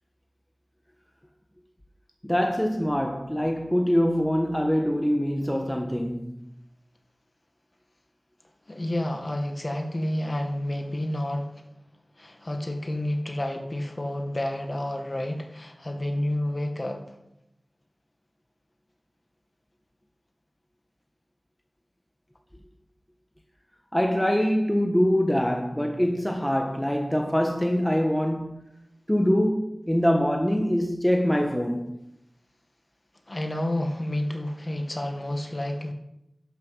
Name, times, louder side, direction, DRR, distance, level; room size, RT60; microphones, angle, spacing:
voice 1, 2.2-6.4 23.9-28.6 29.1-32.0, equal, 10° left, 1.3 m, -24 dB
voice 2, 8.7-11.6 12.2-17.2 33.3-35.9, left 1 dB, 35° left, 1.8 m, -30 dB
12.0 x 10.0 x 5.5 m
wide cardioid pair, 50°, 0 cm